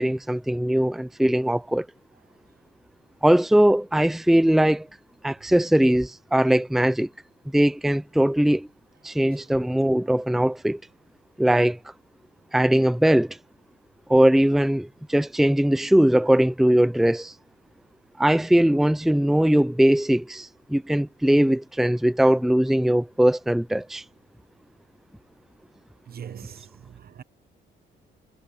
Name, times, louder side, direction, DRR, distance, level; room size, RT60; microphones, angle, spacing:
voice 1, 0.0-1.9 3.2-4.9 5.2-7.1 7.5-8.7 9.0-10.8 11.4-11.8 12.5-13.4 14.1-17.3 18.2-24.0, right 1 dB, ahead, 0.7 m, -20 dB
voice 2, 26.1-27.2, right 8 dB, 50° right, 1.2 m, -41 dB
cardioid pair, 90°, 20 cm